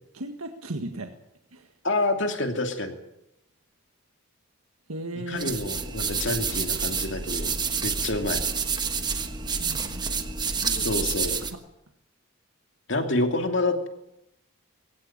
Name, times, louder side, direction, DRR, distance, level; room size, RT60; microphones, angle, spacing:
voice 1, 0.1-1.1 1.5-1.7 4.9-5.5 9.6-10.3 10.6-11.0 11.4-11.5, right 2 dB, 90° right, 5 dB, 1.7 m, -36 dB
voice 2, 1.8-3.0 5.3-7.5 7.8-8.4 10.8-11.4 12.9-13.9, left 2 dB, 55° left, 5 dB, 2.7 m, -27 dB
sound 1, 5.4-11.5, right 5 dB, 20° right, 1.3 m, -28 dB
21.5 x 17.0 x 8.8 m, 0.85 s
head